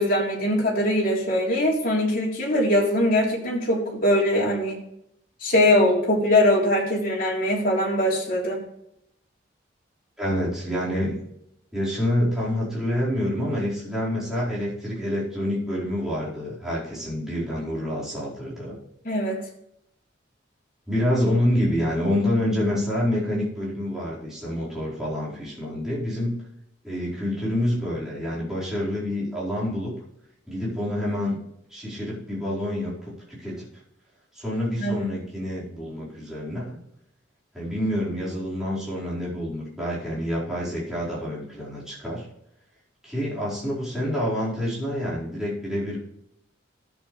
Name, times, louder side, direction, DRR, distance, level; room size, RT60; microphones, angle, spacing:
voice 1, 0.0-4.8 5.4-8.6 19.0-19.4 34.8-35.0, left 1 dB, 45° left, -3 dB, 3.5 m, -22 dB
voice 2, 10.2-11.1 11.7-18.7 20.9-26.3 26.8-29.9 30.5-31.4 31.7-33.6 34.3-36.8 37.5-42.2 43.0-46.0, left 1 dB, 5° right, -9 dB, 4.7 m, -27 dB
12.5 x 8.3 x 3.3 m, 0.76 s
head